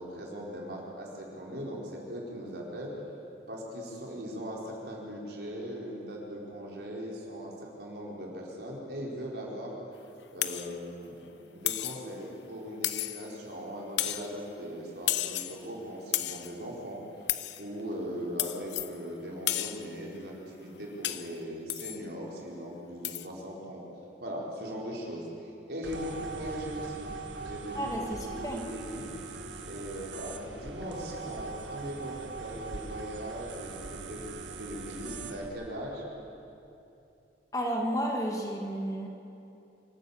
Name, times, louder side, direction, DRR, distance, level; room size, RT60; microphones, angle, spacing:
voice 1, 0.0-2.9 3.5-9.7 10.3-17.0 17.6-23.8 24.2-27.1 27.4-28.1 28.4-29.1 29.7-36.0, equal, 65° right, -3 dB, 4.6 m, -39 dB
sound 1, 10.4-10.7 11.6-12.1 12.8-13.3 14.0-14.3 15.1-15.6 16.1-16.5 17.3-17.6 18.4-18.9 19.5-19.9 21.0-21.3 21.7-22.0 23.0-23.3, left 13 dB, 75° left, 0.8 m, -32 dB
sound 2, 25.8-35.5, right 4 dB, 85° right, 1.9 m, -41 dB
voice 2, 27.7-28.6 37.5-39.1, equal, 20° left, 1 dB, 1.8 m, -32 dB
25.5 x 14.5 x 8.5 m, 2.8 s
head